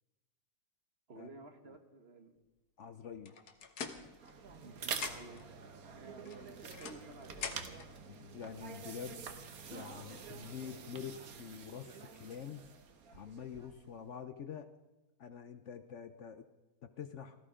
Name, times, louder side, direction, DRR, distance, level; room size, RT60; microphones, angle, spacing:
voice 1, 1.1-2.4 4.5-5.5 5.8-7.9, right 3 dB, 45° right, 6 dB, 1.4 m, -54 dB
voice 2, 2.8-3.4 8.1-9.3 9.7-12.6 13.1-14.7 15.2-16.5 16.8-17.4, left 7 dB, 60° left, 10 dB, 0.9 m, -46 dB
sound 1, 3.2-4.6 4.9-5.5 6.2-7.9, left 6 dB, 80° left, 1.8 m, -45 dB
sound 2, 4.0-13.9, right 6 dB, 70° right, 1.6 m, -47 dB
18.0 x 14.0 x 5.0 m, 1.1 s
omnidirectional pair, 1.6 m